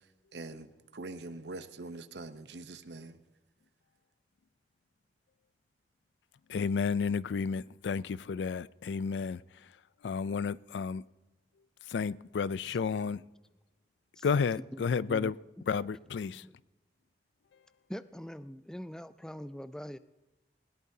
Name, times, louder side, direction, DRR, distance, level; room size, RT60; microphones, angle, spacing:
voice 1, 0.3-3.2, right 2 dB, 75° right, 0.8 m, -44 dB
voice 2, 6.5-9.8 10.0-11.0 11.8-13.2 14.2-15.4 15.7-16.5, left 5 dB, 85° left, 0.4 m, -32 dB
voice 3, 14.7-15.3 16.4-16.5 17.9-20.0, equal, 5° left, 0.3 m, -43 dB
19.5 x 17.5 x 2.8 m
head